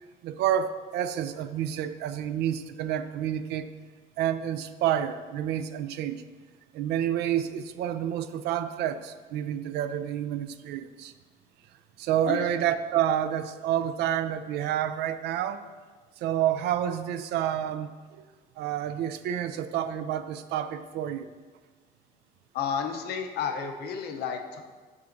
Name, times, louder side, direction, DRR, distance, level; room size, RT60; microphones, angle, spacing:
voice 1, 0.2-3.7 4.2-6.2 6.7-11.1 12.0-15.7 16.2-18.3 18.6-21.3, right 10 dB, 80° right, 11 dB, 0.4 m, -29 dB
voice 2, 22.5-24.6, left 7 dB, 70° left, 5 dB, 0.7 m, -31 dB
7.3 x 5.7 x 2.6 m, 1.4 s
cardioid pair, 110°, 17 cm